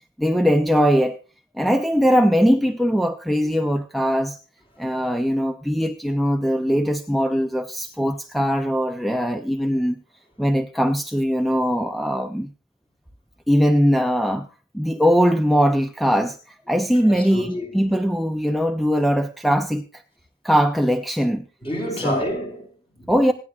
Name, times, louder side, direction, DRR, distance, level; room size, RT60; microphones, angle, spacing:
voice 1, 0.2-1.2 1.6-4.4 4.8-10.0 10.4-12.5 13.5-14.5 14.7-20.0 20.4-21.4 22.0-22.2 23.1-23.3, equal, ahead, 0.5 m, -20 dB
voice 2, 17.0-17.9 21.6-23.2, equal, 30° left, 4.5 m, -29 dB
26.5 x 9.8 x 2.4 m
head